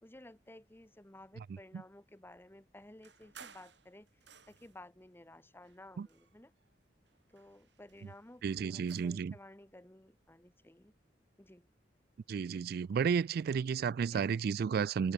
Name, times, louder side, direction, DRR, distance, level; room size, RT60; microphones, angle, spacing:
voice 1, 0.0-4.1 4.5-6.5 7.3-10.9 11.4-11.7 14.1-14.3, left 1 dB, 15° left, 1.1 m, -55 dB
sound 1, 3.0-4.9 5.6-6.7 7.1-9.3, right 6 dB, 80° right, 5.9 m, -58 dB
voice 2, 8.4-9.4 12.3-15.1, right 6 dB, 55° right, 0.3 m, -32 dB
head